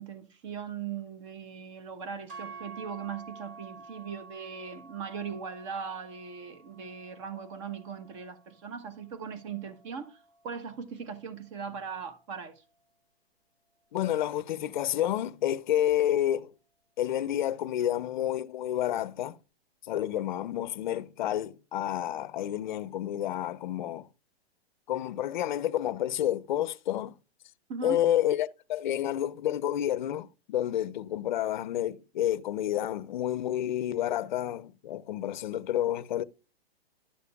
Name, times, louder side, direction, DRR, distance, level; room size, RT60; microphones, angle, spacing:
voice 1, 0.0-10.2 10.4-12.5 27.7-28.0, right 6 dB, 30° right, 1.1 m, -39 dB
sound 1, 2.3-10.5, right 4 dB, 55° right, 3.0 m, -50 dB
voice 2, 13.9-16.5 17.0-19.4 19.9-24.1 24.9-27.2 27.8-36.2, left 12 dB, 50° left, 0.6 m, -29 dB
11.5 x 6.8 x 2.3 m
hypercardioid pair, 165°, 32 cm